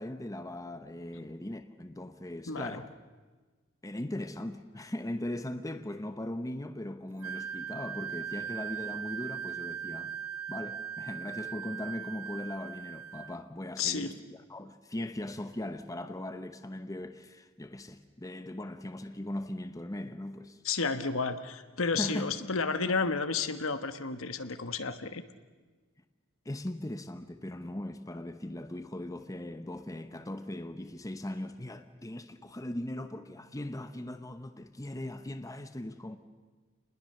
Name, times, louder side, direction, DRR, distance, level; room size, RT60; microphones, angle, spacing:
voice 1, 0.0-2.9 3.8-10.1 10.5-20.6 22.0-22.3 26.4-36.2, left 1 dB, 15° left, 0.9 m, -39 dB
voice 2, 2.5-2.8 13.8-14.1 20.6-25.2, left 4 dB, 65° left, 1.2 m, -31 dB
Wind instrument woodwind instrument, 7.2-13.4, right 8 dB, 85° right, 0.8 m, -39 dB
29.0 x 20.5 x 6.7 m
head